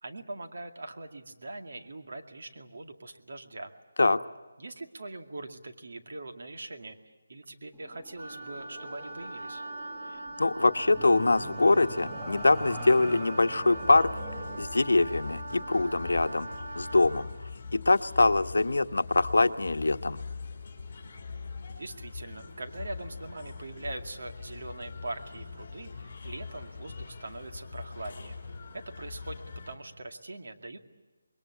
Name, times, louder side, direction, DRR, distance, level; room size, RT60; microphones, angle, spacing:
voice 1, 0.0-3.7 4.6-7.0 7.3-9.6 21.8-28.4 28.7-30.8, right 2 dB, 60° right, 5 dB, 2.2 m, -42 dB
sound 1, 7.7-16.7, equal, 5° right, 1.0 m, -44 dB
Wind instrument woodwind instrument, 8.2-17.3, right 2 dB, 30° right, 3.7 m, -41 dB
voice 2, 10.4-14.1 14.6-16.5 16.8-17.3 17.7-20.2, left 2 dB, 80° left, 10 dB, 1.0 m, -24 dB
sound 2, 13.7-29.7, left 4 dB, 25° left, 4.7 m, -42 dB
26.5 x 21.5 x 8.3 m, 1.3 s
figure-of-eight pair, 175°, 0 cm